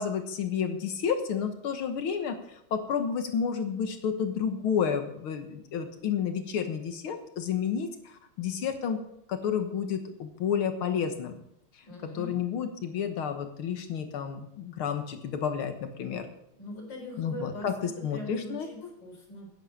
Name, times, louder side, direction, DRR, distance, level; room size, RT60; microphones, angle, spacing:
voice 1, 0.0-9.0 9.3-11.3 12.1-16.3 17.2-18.7, left 7 dB, 80° left, 7 dB, 2.2 m, -31 dB
voice 2, 11.8-12.4 16.6-17.7 18.1-19.5, left 1 dB, 55° left, 0 dB, 4.6 m, -41 dB
10.5 x 9.7 x 6.4 m, 0.77 s
omnidirectional pair, 2.3 m